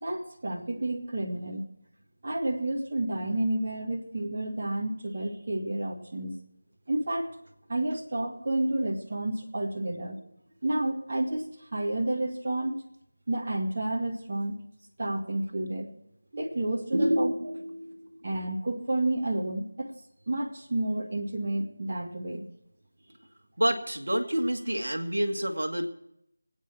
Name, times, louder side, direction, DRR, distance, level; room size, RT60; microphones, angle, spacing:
voice 1, 0.0-1.7 2.2-6.3 6.9-7.3 7.7-10.2 10.6-12.9 13.3-14.6 15.0-15.9 16.3-17.3 18.2-19.9 20.3-22.5, right 1 dB, 40° right, -1 dB, 2.0 m, -30 dB
voice 2, 16.9-18.0 23.6-25.9, equal, 65° right, 4 dB, 2.2 m, -28 dB
26.0 x 9.4 x 4.5 m, 0.79 s
figure-of-eight pair, 165°, 0 cm